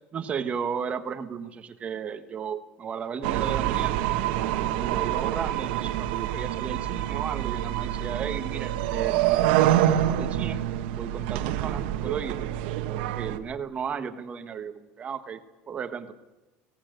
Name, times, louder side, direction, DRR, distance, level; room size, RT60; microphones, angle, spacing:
voice 1, 0.1-4.1 4.7-10.6 10.9-12.4 12.9-15.4 15.7-16.1, right 7 dB, 25° right, 9 dB, 1.3 m, -34 dB
sound 1, 3.2-13.4, right 12 dB, 80° right, 1.4 m, -26 dB
18.0 x 15.5 x 9.3 m, 1.1 s
cardioid pair, 165°, 5 cm